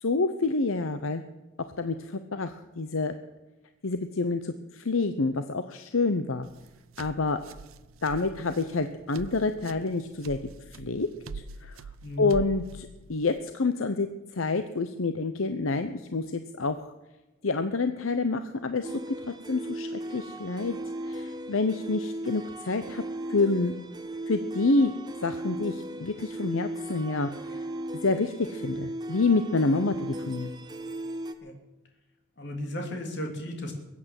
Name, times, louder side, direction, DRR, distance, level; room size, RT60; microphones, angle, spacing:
voice 1, 0.0-1.2 1.8-3.1 3.8-6.5 7.0-7.4 8.0-10.4 10.8-11.1 11.3-11.8 12.2-14.1 14.4-16.9 17.4-20.8 21.1-23.0 23.3-23.7 24.3-24.9 25.2-27.6 28.0-30.6, left 3 dB, 80° left, 9 dB, 0.8 m, -28 dB
sound 1, 6.4-13.4, right 3 dB, 85° right, 0.6 m, -44 dB
sound 2, 18.8-31.3, right 1 dB, 20° right, 1.1 m, -37 dB
voice 2, 32.4-33.7, left 1 dB, 55° left, 3 dB, 3.3 m, -34 dB
22.0 x 8.6 x 7.7 m, 1.0 s
head